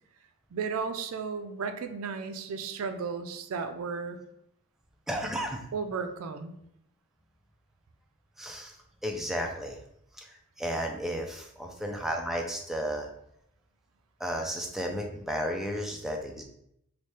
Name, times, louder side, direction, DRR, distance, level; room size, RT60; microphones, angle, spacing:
voice 1, 0.5-4.2 5.7-6.6, right 5 dB, 75° right, 8 dB, 0.4 m, -34 dB
voice 2, 5.1-5.6 8.4-8.8 9.0-9.8 10.1-13.1 14.2-16.4, equal, ahead, 1 dB, 0.3 m, -33 dB
3.1 x 2.2 x 4.2 m, 0.75 s
head